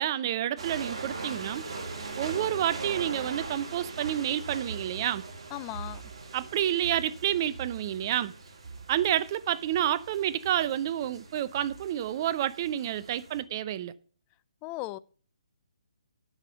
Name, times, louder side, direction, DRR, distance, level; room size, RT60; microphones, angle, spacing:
voice 1, 0.0-1.7 2.2-5.3 6.3-8.3 8.9-13.9, right 11 dB, 35° right, 0.7 m, -29 dB
sound 1, 0.6-13.4, right 3 dB, 55° right, 3.6 m, -41 dB
voice 2, 5.5-6.0 14.6-15.0, left 18 dB, 20° left, 0.4 m, -36 dB
8.8 x 6.8 x 6.8 m
figure-of-eight pair, 145°, 3 cm